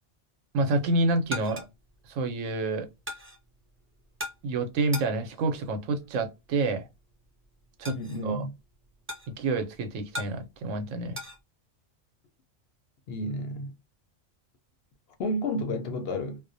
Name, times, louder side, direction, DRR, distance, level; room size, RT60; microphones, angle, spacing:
voice 1, 0.5-1.6 2.1-2.9 4.4-6.9 7.8-8.0 8.2-8.4 9.4-11.2, right 2 dB, 85° right, 1.0 m, -28 dB
sound 1, 1.2-11.4, left 1 dB, 15° right, 0.6 m, -43 dB
voice 2, 7.9-8.5 13.1-13.7 15.2-16.4, left 1 dB, 65° left, 0.7 m, -31 dB
2.4 x 2.0 x 2.5 m
omnidirectional pair, 1.3 m